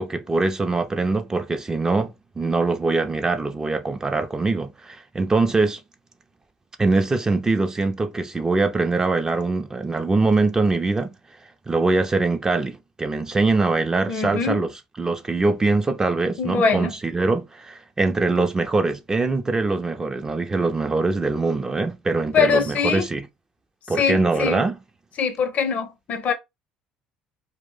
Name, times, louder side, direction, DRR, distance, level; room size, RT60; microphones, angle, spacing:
voice 1, 0.0-5.8 6.8-11.1 11.7-14.7 15.0-23.3 23.9-24.8, right 3 dB, 20° right, 0.5 m, -23 dB
voice 2, 14.1-14.6 16.4-16.9 22.3-23.1 24.0-24.6 25.2-26.3, left 5 dB, 50° left, 0.6 m, -22 dB
2.4 x 2.0 x 3.7 m
hypercardioid pair, 70°, 3 cm